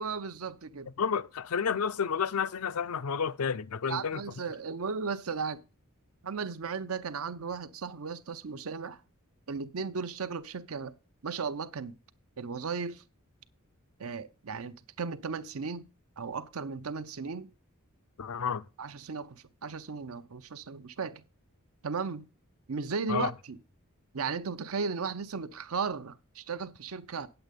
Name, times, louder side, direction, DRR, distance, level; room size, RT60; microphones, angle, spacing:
voice 1, 0.0-0.9 3.8-5.6 6.2-9.0 9.5-10.9 11.2-12.0 12.4-13.0 14.0-15.9 16.2-17.5 18.8-21.2 21.8-22.3 22.7-23.6 24.1-27.3, right 5 dB, 75° right, 0.7 m, -35 dB
voice 2, 1.0-4.2 18.2-18.6 23.1-23.3, left 6 dB, 80° left, 0.6 m, -30 dB
9.1 x 7.9 x 5.2 m
head